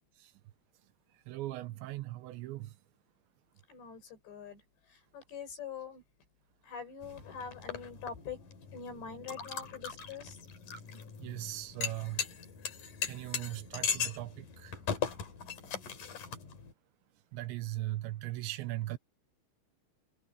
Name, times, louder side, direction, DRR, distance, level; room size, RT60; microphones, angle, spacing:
voice 1, 1.3-2.7 11.2-12.2 13.1-14.8 17.3-19.0, right 16 dB, 80° right, 2.9 m, -39 dB
voice 2, 3.7-4.6 5.1-6.0 6.6-8.4 8.7-10.4, left 6 dB, 65° left, 8.1 m, -44 dB
sound 1, 7.0-16.7, left 7 dB, 45° left, 3.9 m, -39 dB
omnidirectional pair, 5.4 m